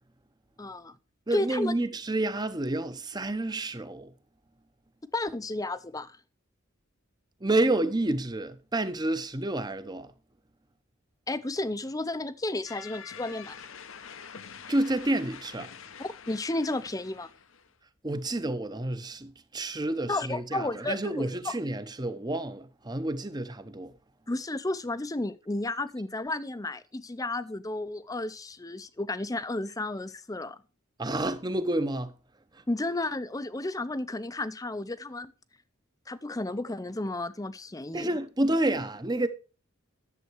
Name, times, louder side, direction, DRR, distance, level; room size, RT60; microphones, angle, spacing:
voice 1, 0.6-1.0 1.3-1.7 5.1-6.2 11.3-13.7 16.0-17.3 20.1-21.5 24.3-30.6 32.7-35.3 36.1-38.1, left 2 dB, 15° left, 0.6 m, -32 dB
voice 2, 1.3-4.1 7.4-10.1 14.7-15.7 18.0-23.9 31.0-32.1 37.9-39.3, right 1 dB, 20° right, 0.8 m, -29 dB
sound 1, 12.7-17.7, left 7 dB, 70° left, 0.9 m, -46 dB
11.0 x 7.6 x 4.6 m
head